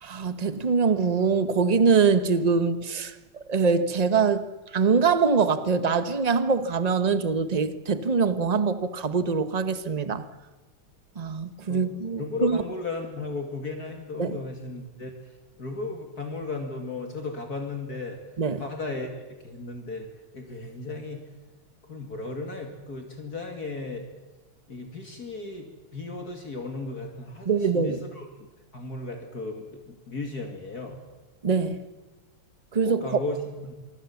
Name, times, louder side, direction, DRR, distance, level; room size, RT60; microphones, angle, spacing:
voice 1, 0.0-3.2 3.5-4.5 4.7-10.2 11.2-12.6 14.2-14.4 18.4-18.6 27.4-28.0 31.4-31.8 32.7-33.0, right 5 dB, 30° right, 0.8 m, -23 dB
voice 2, 12.2-15.1 15.6-18.2 18.6-19.1 19.4-20.1 20.3-21.2 21.9-24.0 24.7-31.0 32.8-33.7, left 3 dB, 45° left, 2.8 m, -35 dB
25.0 x 24.0 x 7.2 m
omnidirectional pair, 2.3 m